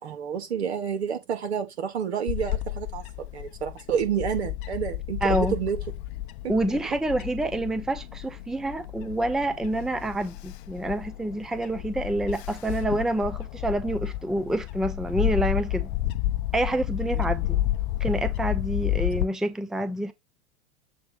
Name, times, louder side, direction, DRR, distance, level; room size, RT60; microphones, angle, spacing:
voice 1, 0.0-5.8 6.4-6.5 17.1-17.3, right 7 dB, 70° right, 2.4 m, -29 dB
Bird / Wind, 2.3-19.3, left 14 dB, 50° left, 0.8 m, -31 dB
voice 2, 5.2-5.6 6.5-15.9 16.5-17.6 18.0-20.1, right 1 dB, ahead, 0.7 m, -27 dB
7.7 x 3.1 x 5.6 m
figure-of-eight pair, 90°, 33 cm